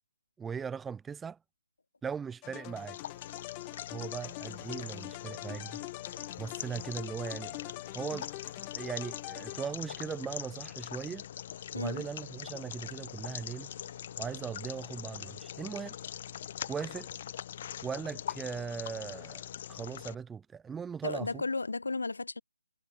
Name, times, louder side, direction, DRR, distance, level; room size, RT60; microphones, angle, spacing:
voice 1, 0.4-1.4 2.0-3.0 3.9-5.8 6.4-8.3 8.8-11.3 11.7-13.7 14.2-16.0 16.7-17.1 17.8-21.4, right 6 dB, 5° right, 3.2 m, -39 dB
sound 1, 2.4-10.1, left 40 dB or more, 20° left, 0.6 m, -44 dB
sound 2, 2.7-20.1, left 10 dB, 35° left, 2.5 m, -43 dB
voice 2, 21.0-22.4, left 3 dB, 75° left, 3.8 m, -34 dB
figure-of-eight pair, 155°, 0 cm